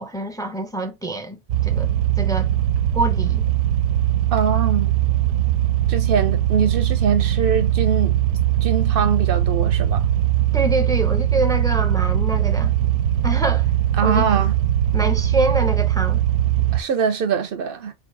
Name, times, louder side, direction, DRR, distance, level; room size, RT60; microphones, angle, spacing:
voice 1, 0.0-1.4 1.6-1.9 2.2-2.5 2.9-3.4 10.5-12.7 13.2-13.7 14.0-14.3 14.9-16.2, right 1 dB, 5° left, 0.3 m, -25 dB
sound 1, 1.5-16.8, right 11 dB, 90° right, 0.9 m, -20 dB
voice 2, 4.3-4.9 5.9-8.2 8.6-10.1 14.0-14.5 16.7-17.9, right 6 dB, 60° right, 0.7 m, -23 dB
3.6 x 3.0 x 3.7 m
omnidirectional pair, 1.1 m